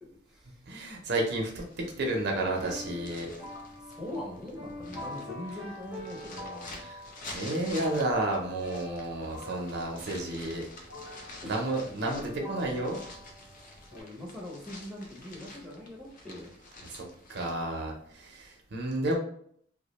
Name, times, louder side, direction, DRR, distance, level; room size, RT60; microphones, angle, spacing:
voice 1, 0.0-0.6 3.9-6.9 11.4-11.6 13.9-16.5, left 1 dB, 5° right, -4 dB, 0.6 m, -42 dB
voice 2, 0.7-1.6 2.0-3.3 6.8-7.0 7.3-10.7 11.5-13.0 16.9-19.2, right 2 dB, 55° right, 1 dB, 0.5 m, -31 dB
sound 1, 1.2-17.7, left 2 dB, 45° left, 0.5 m, -49 dB
sound 2, 1.7-14.0, left 1 dB, 75° left, 1.0 m, -45 dB
2.3 x 2.1 x 2.9 m, 0.63 s
head